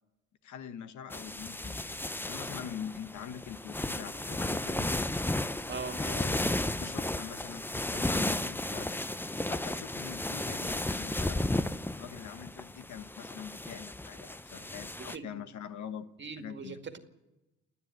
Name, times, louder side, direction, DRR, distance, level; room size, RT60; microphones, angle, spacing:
voice 1, 0.4-2.0 2.2-4.9 6.0-9.0 9.5-11.5 12.0-16.1 16.4-16.8, left 8 dB, 70° left, 11 dB, 1.2 m, -44 dB
sound 1, 1.1-15.2, left 1 dB, 5° left, 0.6 m, -34 dB
voice 2, 5.7-6.0 15.0-15.5 16.2-17.0, right 4 dB, 40° right, 6 dB, 2.1 m, -41 dB
29.0 x 9.9 x 9.1 m, 1.0 s
cardioid pair, 90°, 30 cm